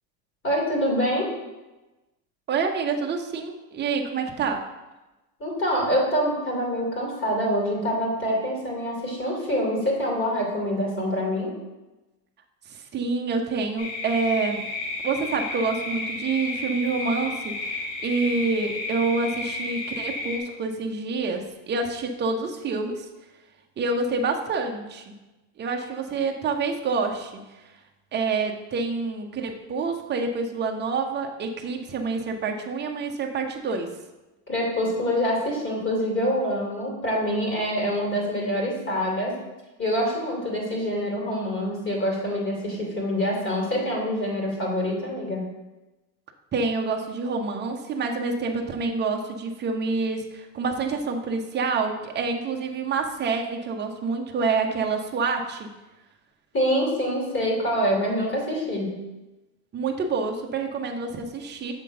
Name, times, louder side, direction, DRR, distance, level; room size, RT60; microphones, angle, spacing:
voice 1, 0.4-1.3 5.4-11.5 34.5-39.3 39.8-45.4 56.5-59.0, equal, 25° left, -2 dB, 2.6 m, -25 dB
voice 2, 2.5-4.7 12.9-14.6 15.0-23.1 23.8-25.2 25.6-27.4 28.1-33.9 46.5-55.7 59.7-61.7, right 4 dB, 20° right, 3 dB, 0.8 m, -27 dB
sound 1, 13.8-20.4, left 2 dB, 60° left, 1.9 m, -32 dB
6.9 x 3.7 x 6.3 m, 1.1 s
supercardioid pair, 135°, 49 cm